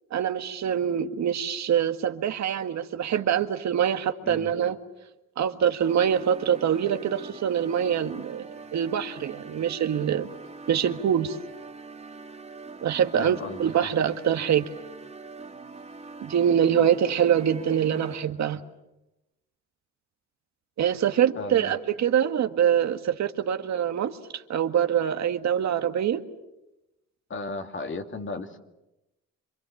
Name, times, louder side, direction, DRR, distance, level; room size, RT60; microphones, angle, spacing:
voice 1, 0.1-4.8 5.4-10.3 10.7-11.4 12.8-14.6 16.2-18.6 20.8-26.2, right 9 dB, 65° right, 7 dB, 1.8 m, -24 dB
sound 1, 5.8-18.5, right 4 dB, 20° right, 2.7 m, -43 dB
voice 2, 13.1-13.9 21.4-21.7 27.3-28.6, left 3 dB, 40° left, 6 dB, 2.6 m, -35 dB
27.0 x 25.5 x 7.2 m, 0.94 s
cardioid pair, 90°, 30 cm